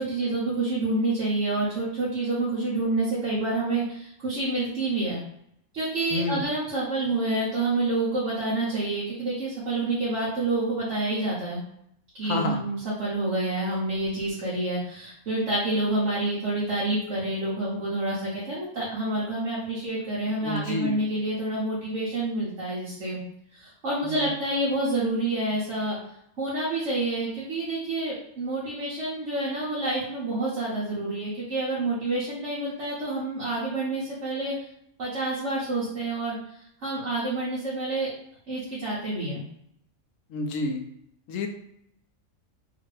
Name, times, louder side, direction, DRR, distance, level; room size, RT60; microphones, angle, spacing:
voice 1, 0.0-5.2 5.7-11.6 12.1-23.2 23.6-26.0 26.4-34.5 35.0-36.4 36.8-38.1 38.5-39.4, right 2 dB, 65° right, -9 dB, 1.4 m, -28 dB
voice 2, 6.1-6.5 12.2-12.6 20.4-21.0 24.0-24.3 40.3-40.8 41.3-41.5, left 2 dB, 80° left, 5 dB, 1.0 m, -29 dB
3.6 x 2.5 x 3.2 m, 0.74 s
omnidirectional pair, 1.4 m